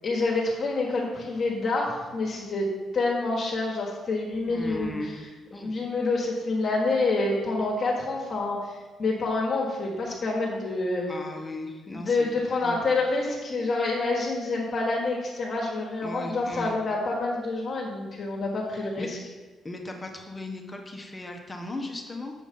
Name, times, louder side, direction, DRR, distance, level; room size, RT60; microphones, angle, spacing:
voice 1, 0.0-2.7 2.9-5.3 5.6-11.1 11.9-19.2, left 3 dB, 45° left, -2 dB, 1.5 m, -27 dB
voice 2, 4.5-5.1 5.5-5.7 11.1-12.3 12.6-12.8 16.0-16.7 19.0-19.1 19.6-22.3, left 1 dB, 20° left, 2 dB, 1.1 m, -37 dB
7.5 x 5.1 x 5.4 m, 1.3 s
cardioid pair, 90°, 0 cm